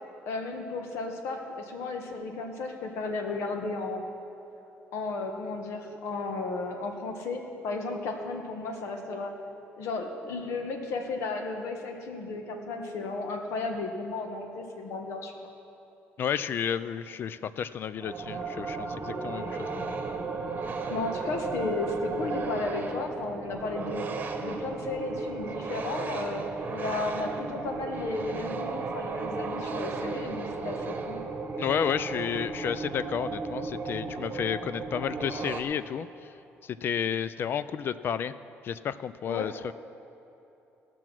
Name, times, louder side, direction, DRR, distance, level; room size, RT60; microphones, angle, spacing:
voice 1, 0.3-4.0 4.9-9.3 9.8-15.5 20.9-24.1 24.4-31.2 39.3-39.5, left 3 dB, 80° left, 4 dB, 1.4 m, -34 dB
voice 2, 16.2-19.9 31.6-36.3 36.6-38.3 38.6-39.7, left 8 dB, 50° left, 15 dB, 0.3 m, -31 dB
sound 1, 18.0-35.6, right 4 dB, 40° right, 1.1 m, -35 dB
17.5 x 6.1 x 6.1 m, 2.9 s
cardioid pair, 110°, 5 cm